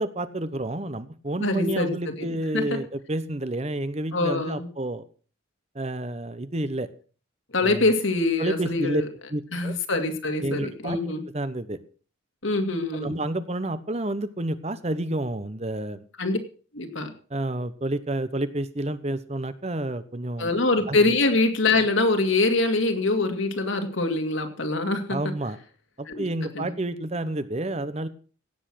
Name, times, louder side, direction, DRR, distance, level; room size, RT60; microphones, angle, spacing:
voice 1, 0.0-5.0 5.7-6.9 7.6-7.9 8.4-9.0 9.3-9.8 10.4-11.8 12.9-16.0 17.3-20.5 20.9-21.0 25.1-25.6 26.0-28.1, right 1 dB, 30° right, 13 dB, 0.9 m, -30 dB
voice 2, 1.4-2.1 2.5-2.8 4.1-4.7 7.5-9.1 9.5-11.2 12.4-13.2 16.2-16.4 16.7-17.1 20.4-25.2 26.1-26.2 26.5-26.7, left 2 dB, 70° left, 5 dB, 2.4 m, -24 dB
17.0 x 8.2 x 6.3 m, 0.40 s
head